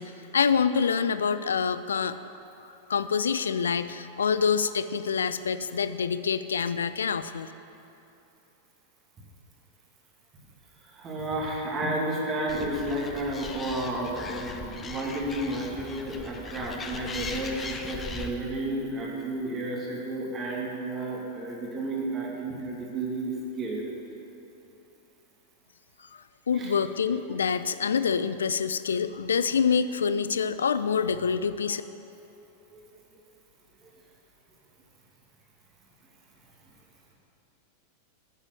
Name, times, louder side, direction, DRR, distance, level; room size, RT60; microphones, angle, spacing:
voice 1, 0.0-2.2 2.9-7.5 26.1-31.8, left 6 dB, 70° left, 13 dB, 0.4 m, -26 dB
voice 2, 10.8-23.8 26.5-26.7 32.7-32.8, right 1 dB, 25° right, -2 dB, 2.4 m, -32 dB
Animal, 12.5-18.3, left 4 dB, 20° left, 0.9 m, -39 dB
10.0 x 7.4 x 7.7 m, 2.9 s
figure-of-eight pair, 90°, 0 cm